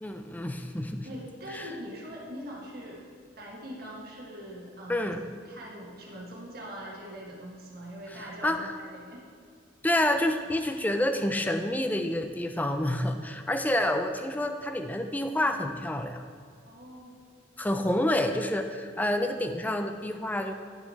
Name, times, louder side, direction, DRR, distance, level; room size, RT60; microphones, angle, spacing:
voice 1, 0.0-1.1 1.5-1.7 4.9-5.3 8.1-8.7 9.8-16.2 17.6-20.5, left 1 dB, 10° left, 7 dB, 0.4 m, -28 dB
voice 2, 1.0-3.0 3.4-5.1 5.4-9.3 16.6-17.2, equal, 55° right, -3 dB, 1.4 m, -42 dB
10.0 x 5.8 x 4.1 m, 2.2 s
head